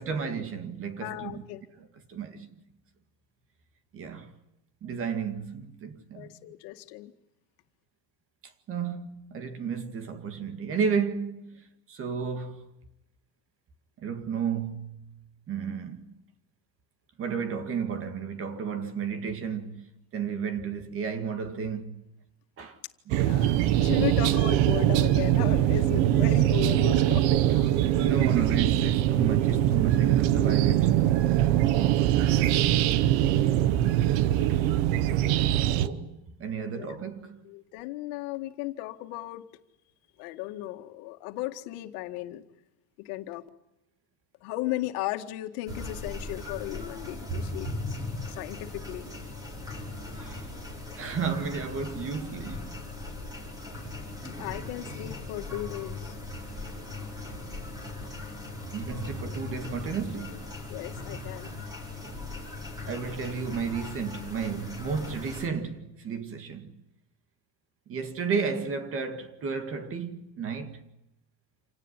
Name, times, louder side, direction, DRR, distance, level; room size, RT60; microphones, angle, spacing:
voice 1, 0.0-1.4 1.8-2.6 3.9-4.3 4.8-6.3 8.4-12.7 14.0-15.1 15.5-16.2 17.2-22.1 22.6-22.8 23.1-23.2 27.9-31.1 35.6-37.5 50.2-50.5 51.0-52.8 58.7-60.6 62.9-66.7 67.9-70.8, right 6 dB, 30° right, 1.9 m, -33 dB
voice 2, 1.0-1.6 6.1-7.1 23.1-27.9 36.8-36.9 37.4-39.4 40.2-42.4 43.0-43.4 44.4-48.0 48.3-49.1 54.4-56.2 60.7-61.6, left 16 dB, 75° left, 2.1 m, -36 dB
sound 1, 23.1-35.9, right 12 dB, 65° right, 1.2 m, -22 dB
sound 2, 45.7-65.5, left 2 dB, 10° right, 4.7 m, -38 dB
27.5 x 18.0 x 10.0 m
cardioid pair, 175°, 45 cm